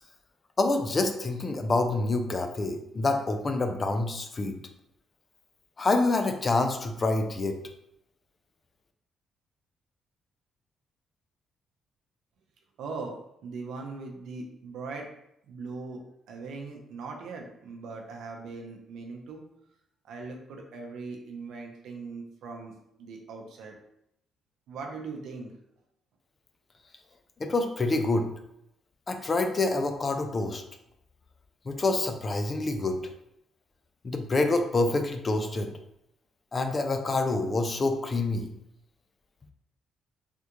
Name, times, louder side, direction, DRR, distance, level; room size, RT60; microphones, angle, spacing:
voice 1, 0.6-4.6 5.8-7.6 27.4-28.3 29.1-30.6 31.7-33.0 34.0-35.7 36.5-38.5, left 2 dB, 30° left, 6 dB, 0.4 m, -27 dB
voice 2, 12.8-13.1 13.4-15.1 15.5-16.0 16.3-19.4 20.1-22.7 23.0-23.7 24.7-25.5, right 4 dB, 85° right, 2 dB, 0.6 m, -40 dB
3.5 x 2.3 x 2.9 m, 0.78 s
cardioid pair, 120°, 0 cm